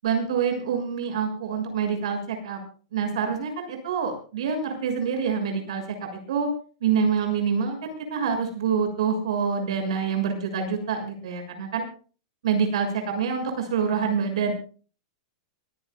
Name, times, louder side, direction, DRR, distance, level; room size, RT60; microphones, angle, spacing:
voice 1, 0.0-2.6 2.9-6.5 6.8-11.8 12.4-14.5, right 6 dB, 65° right, 5 dB, 6.6 m, -26 dB
24.5 x 16.5 x 2.3 m, 0.38 s
supercardioid pair, 175°, 3 cm